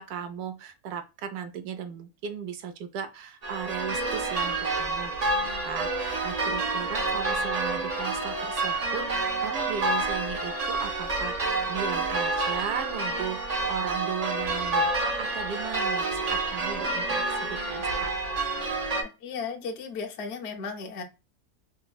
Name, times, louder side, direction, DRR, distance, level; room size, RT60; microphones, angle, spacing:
voice 1, 0.0-5.1 5.4-18.2, right 7 dB, 85° right, 7 dB, 1.1 m, -37 dB
sound 1, 3.4-19.0, right 2 dB, 50° right, 0.4 m, -28 dB
voice 2, 19.0-21.0, left 5 dB, 55° left, 3 dB, 0.9 m, -35 dB
5.2 x 2.0 x 2.3 m, 0.28 s
omnidirectional pair, 1.6 m